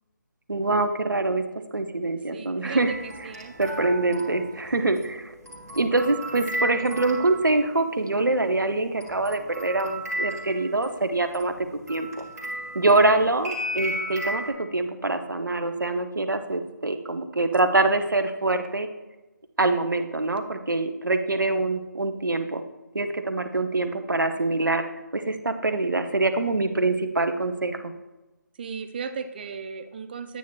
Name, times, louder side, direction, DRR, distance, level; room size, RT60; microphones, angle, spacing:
voice 1, 0.5-1.4 1.7-3.0 3.6-5.3 5.8-11.5 11.9-12.2 12.7-18.9 19.6-22.6 22.9-27.9, right 2 dB, 80° right, 8 dB, 0.8 m, -24 dB
voice 2, 2.3-3.6 4.8-5.0 28.6-30.4, right 5 dB, 30° right, 9 dB, 0.5 m, -36 dB
sound 1, 2.8-7.8 9.0-14.5, right 1 dB, 55° right, 1.9 m, -34 dB
9.1 x 8.4 x 2.3 m, 1.1 s
figure-of-eight pair, 150°, 10 cm